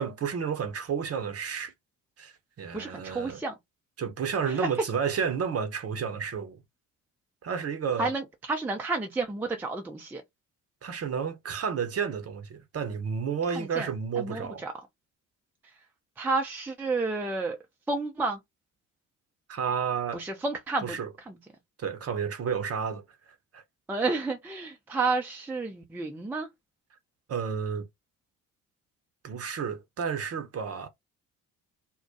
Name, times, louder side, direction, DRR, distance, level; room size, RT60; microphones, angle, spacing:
voice 1, 0.0-1.7 2.2-3.4 4.0-6.6 7.4-8.1 10.8-14.7 19.5-20.2 20.8-21.1 21.8-23.0 23.5-23.6 27.3-27.9 29.2-30.9, right 6 dB, 30° right, 0.7 m, -31 dB
voice 2, 2.7-3.5 4.6-4.7 8.0-10.2 13.5-13.9 14.2-14.7 16.2-17.6 17.9-18.4 20.1-21.0 21.3-21.4 23.9-26.5, right 3 dB, 5° right, 0.5 m, -30 dB
2.2 x 2.1 x 2.6 m
figure-of-eight pair, 50°, 45 cm